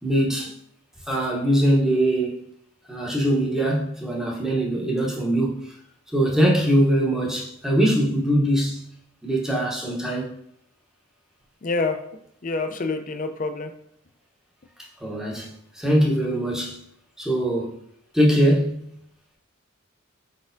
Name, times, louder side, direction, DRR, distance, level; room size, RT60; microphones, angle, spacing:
voice 1, 0.0-0.5 1.1-2.5 2.9-5.7 6.1-8.9 9.2-10.3 15.0-16.8 17.2-17.7 18.1-18.9, right 1 dB, 5° right, 0.8 m, -22 dB
voice 2, 11.6-12.0 12.4-13.7, left 3 dB, 40° left, 0.4 m, -27 dB
4.7 x 4.1 x 2.6 m
head